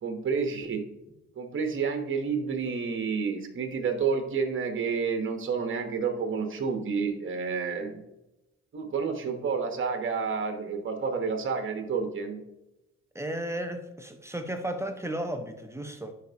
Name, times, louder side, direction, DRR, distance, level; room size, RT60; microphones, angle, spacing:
voice 1, 0.0-0.8 1.4-8.0 8.7-12.4, right 5 dB, 40° right, 5 dB, 1.2 m, -30 dB
voice 2, 13.1-16.1, right 1 dB, 10° right, 6 dB, 0.7 m, -34 dB
10.5 x 4.2 x 2.9 m, 0.96 s
cardioid pair, 90°, 30 cm